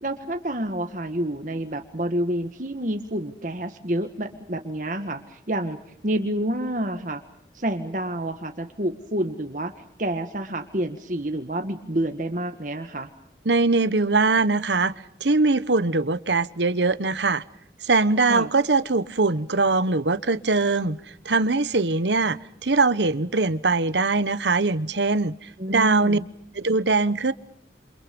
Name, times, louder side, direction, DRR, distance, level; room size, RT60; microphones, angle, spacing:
voice 1, 0.0-5.8 6.0-7.2 7.5-9.7 10.0-13.1 18.3-18.5 25.6-26.3, right 1 dB, 45° right, 1.7 m, -28 dB
voice 2, 13.4-14.9 15.2-17.4 17.8-26.2 26.5-27.3, right 3 dB, 90° right, 1.2 m, -22 dB
28.5 x 27.0 x 5.4 m
head